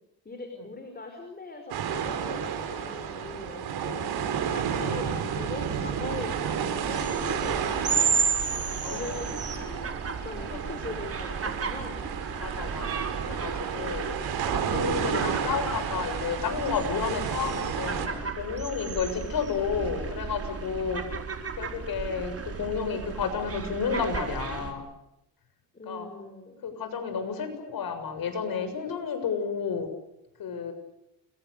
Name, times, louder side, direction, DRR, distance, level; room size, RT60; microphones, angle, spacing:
voice 1, 0.2-8.0 8.9-9.8 10.2-12.1 25.7-26.6, left 2 dB, 25° left, 5 dB, 5.1 m, -40 dB
sound 1, 1.7-18.1, right 7 dB, 85° right, 5.1 m, -32 dB
voice 2, 4.8-5.1 8.8-9.3 10.5-10.6 12.4-14.1 14.5-21.0 21.6-24.9 25.9-26.1 26.6-29.9 30.4-30.7, left 6 dB, 70° left, 8 dB, 7.1 m, -31 dB
sound 2, 6.1-24.7, right 5 dB, 40° right, 4.5 m, -33 dB
30.0 x 24.0 x 6.8 m, 0.84 s
cardioid pair, 105°, 37 cm